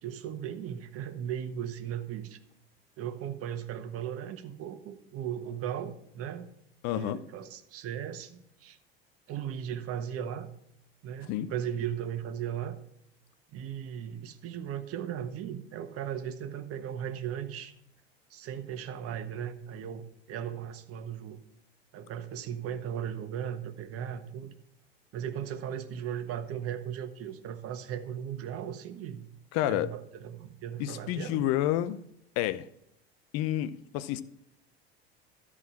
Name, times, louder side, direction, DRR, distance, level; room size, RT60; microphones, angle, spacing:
voice 1, 0.0-2.4 3.0-6.5 7.0-8.8 9.3-10.5 11.0-12.8 13.5-17.7 18.3-21.4 21.9-24.5 25.1-29.3 29.7-31.4, right 9 dB, 45° right, 1.3 m, -37 dB
voice 2, 6.8-7.2 11.3-11.5 29.5-29.9 30.8-32.0 32.4-32.7 33.3-34.2, left 13 dB, 55° left, 0.7 m, -29 dB
13.5 x 4.9 x 6.0 m
hypercardioid pair, 75°, 31 cm